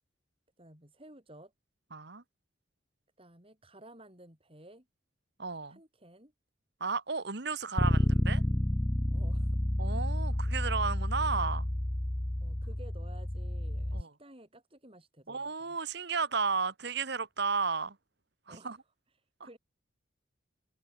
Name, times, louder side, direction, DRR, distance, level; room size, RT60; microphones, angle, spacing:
voice 1, 0.6-1.5 3.2-4.9 5.7-6.3 9.1-9.6 12.4-15.8 18.5-18.8 19.2-19.6, right 1 dB, 30° right, 6.0 m, -54 dB
voice 2, 1.9-2.2 5.4-5.8 6.8-8.4 9.8-11.7 13.9-14.1 15.3-18.0 18.5-18.8 19.4-19.5, right 5 dB, 60° right, 1.4 m, -33 dB
Bass guitar, 7.8-14.0, left 1 dB, 10° left, 0.4 m, -30 dB
open air
head